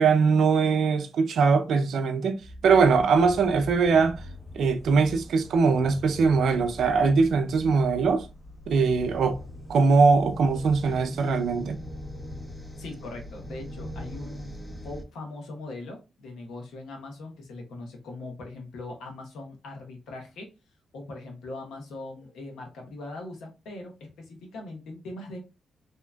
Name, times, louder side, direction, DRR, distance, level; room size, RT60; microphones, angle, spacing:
voice 1, 0.0-4.2 4.6-8.3 8.7-9.4 9.7-11.8, right 4 dB, 75° right, 0.4 m, -21 dB
sound 1, 2.4-15.0, left 1 dB, 5° left, 0.7 m, -41 dB
voice 2, 12.8-14.5 14.8-20.5 20.9-25.4, left 2 dB, 85° left, 0.9 m, -40 dB
3.4 x 2.8 x 2.2 m
cardioid pair, 70°, 0 cm